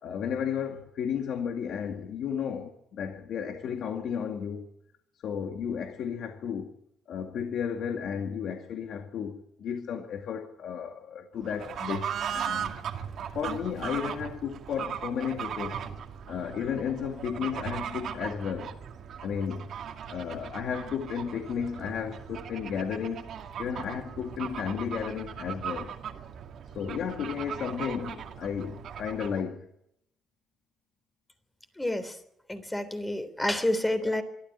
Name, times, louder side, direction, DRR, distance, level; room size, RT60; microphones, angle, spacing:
voice 1, 0.0-4.7 5.2-6.7 7.1-12.7 13.3-15.8 16.3-18.8 19.2-19.7 20.1-23.2 23.6-25.9 26.7-29.7 34.0-34.1, left 7 dB, 70° left, 2.1 m, -33 dB
Fowl / Bird, 11.4-29.5, right 8 dB, 70° right, 2.2 m, -38 dB
voice 2, 31.8-32.2 32.5-34.2, left 1 dB, 10° left, 3.6 m, -29 dB
23.5 x 13.5 x 9.9 m
cardioid pair, 90°, 0 cm